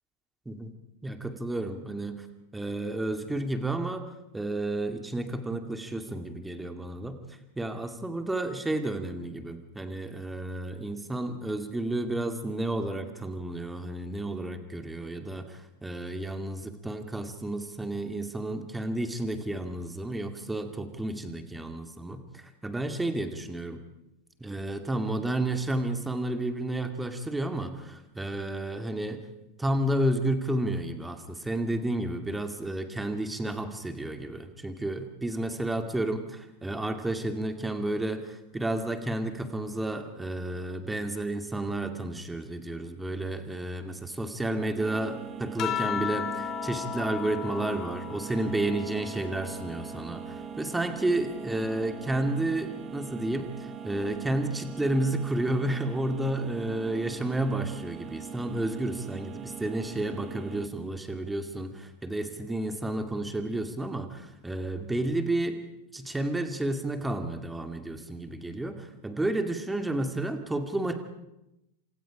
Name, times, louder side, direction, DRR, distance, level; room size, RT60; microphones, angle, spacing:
voice 1, 1.0-2.3 2.5-4.1 4.3-23.8 24.4-29.2 29.6-53.5 53.8-65.6 65.9-71.0, right 1 dB, 5° right, 7 dB, 2.3 m, -31 dB
sound 1, 44.8-60.7, right 7 dB, 25° right, 1.2 m, -41 dB
sound 2, 45.6-50.4 50.8-52.6 53.8-54.3, left 11 dB, 30° left, 1.0 m, -37 dB
29.0 x 27.0 x 5.1 m, 0.91 s
figure-of-eight pair, 90°, 0 cm